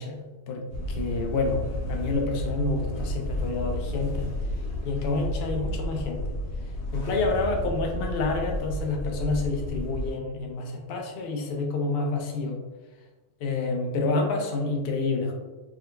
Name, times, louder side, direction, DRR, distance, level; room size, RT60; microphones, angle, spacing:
voice 1, 0.0-4.3 4.8-6.2 6.9-12.6 13.4-15.3, left 3 dB, 65° left, 2 dB, 0.5 m, -28 dB
sound 1, 0.7-10.1, left 1 dB, 80° left, 1.3 m, -32 dB
3.6 x 2.7 x 2.2 m, 1.2 s
omnidirectional pair, 1.6 m